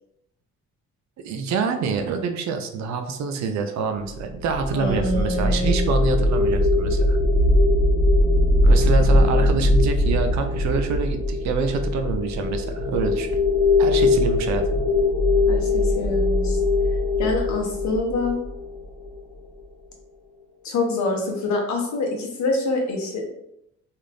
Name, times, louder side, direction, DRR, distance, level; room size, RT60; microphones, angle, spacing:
voice 1, 1.2-7.2 8.6-13.3 13.8-14.8, right 5 dB, 65° right, 6 dB, 0.5 m, -26 dB
sound 1, 4.1-19.3, left 2 dB, 90° left, 1.2 m, -20 dB
voice 2, 4.7-5.9 9.0-9.8 15.5-16.6 17.2-18.4 20.6-23.2, left 2 dB, 65° left, 1 dB, 0.9 m, -26 dB
2.5 x 2.4 x 3.2 m, 0.79 s
cardioid pair, 90°, 30 cm